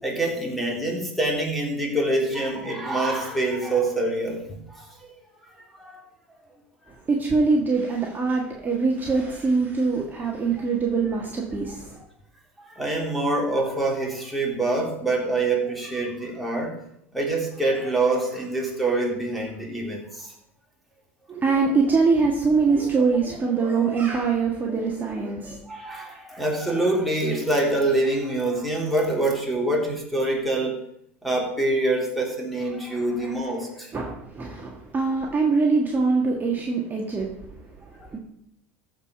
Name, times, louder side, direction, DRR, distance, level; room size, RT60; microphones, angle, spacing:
voice 1, 0.0-4.9 5.8-6.0 12.7-16.8 17.1-20.3 25.7-30.7 31.2-34.1, right 2 dB, ahead, -2 dB, 3.4 m, -25 dB
voice 2, 7.1-11.9 21.3-25.6 33.9-37.3 38.1-38.2, right 4 dB, 25° right, -1 dB, 1.7 m, -23 dB
14.5 x 5.1 x 5.4 m, 0.74 s
hypercardioid pair, 80°, 8 cm